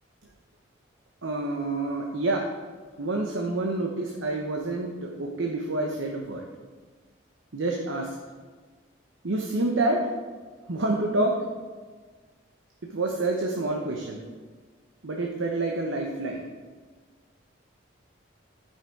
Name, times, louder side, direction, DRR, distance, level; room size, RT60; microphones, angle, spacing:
voice 1, 1.2-2.4 3.0-6.5 7.5-8.2 9.2-10.0 10.7-11.3 12.9-14.2 15.0-16.5, right 2 dB, 75° right, 1 dB, 1.0 m, -28 dB
13.0 x 5.7 x 4.6 m, 1.5 s
head